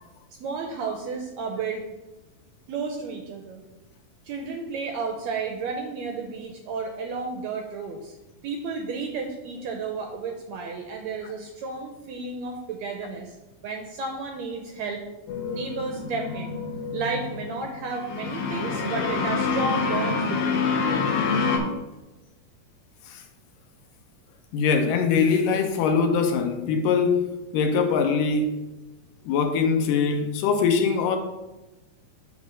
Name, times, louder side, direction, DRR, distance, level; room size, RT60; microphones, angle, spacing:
voice 1, 0.4-1.8 2.7-3.6 4.2-8.2 8.4-13.4 13.6-15.0 15.4-16.6 16.9-21.1, right 4 dB, 80° right, 3 dB, 1.6 m, -32 dB
sound 1, 15.3-21.6, left 4 dB, 65° left, 1.5 m, -27 dB
voice 2, 24.5-27.3 27.5-28.5 29.3-31.2, left 5 dB, 85° left, 5 dB, 2.5 m, -22 dB
8.3 x 3.2 x 6.2 m, 1.0 s
omnidirectional pair, 3.8 m